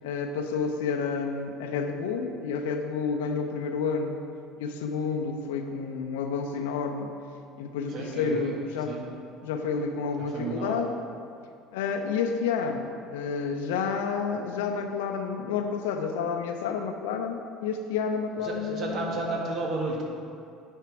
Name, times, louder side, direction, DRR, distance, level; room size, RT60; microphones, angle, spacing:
voice 1, 0.0-4.2 4.6-7.1 7.6-9.0 9.4-10.9 11.7-19.2, left 5 dB, 75° left, 5 dB, 0.6 m, -30 dB
voice 2, 7.9-8.5 8.9-9.0 10.3-10.8 18.4-20.0, right 2 dB, 50° right, -1 dB, 1.8 m, -32 dB
9.7 x 4.6 x 4.7 m, 2.4 s
hypercardioid pair, 70°, 0 cm